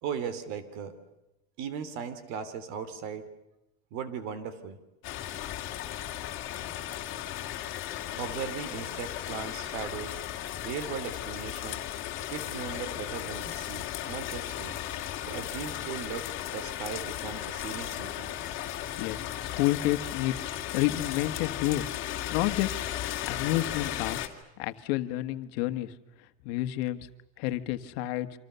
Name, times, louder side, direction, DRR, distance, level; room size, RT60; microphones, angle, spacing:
voice 1, 0.0-0.9 1.6-3.3 3.9-4.8 8.1-10.2 10.6-11.8 12.3-14.8 15.2-16.3 16.5-18.5 19.5-19.6, right 7 dB, 65° right, 13 dB, 3.1 m, -38 dB
sound 1, 5.0-24.3, left 12 dB, 40° left, 2.8 m, -36 dB
voice 2, 19.0-20.3 20.7-21.8 22.3-22.8 23.2-24.2 24.6-25.9 26.4-27.0 27.4-28.3, left 16 dB, 75° left, 9 dB, 1.5 m, -29 dB
28.5 x 26.0 x 6.9 m, 0.92 s
cardioid pair, 155°, 30 cm